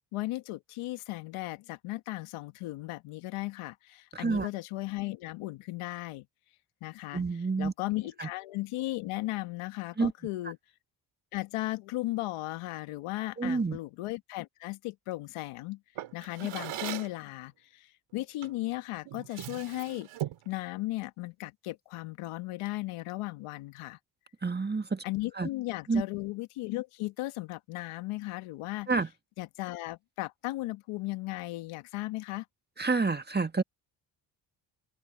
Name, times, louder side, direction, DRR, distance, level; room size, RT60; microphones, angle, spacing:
voice 1, 0.1-6.2 6.8-10.6 11.3-15.8 16.1-20.1 20.4-24.0 25.0-28.9 29.4-32.5, left 18 dB, 80° left, 1.5 m, -36 dB
voice 2, 4.1-4.5 7.1-7.7 8.2-8.3 10.0-10.1 13.4-13.8 24.4-25.0 25.4-25.5 25.9-26.0 28.9-29.1 32.8-33.6, right 4 dB, 20° right, 1.8 m, -28 dB
Drawer open or close, 16.0-17.2 18.4-18.6 19.1-20.5, right 12 dB, 75° right, 4.5 m, -39 dB
open air
supercardioid pair, 55°, 50 cm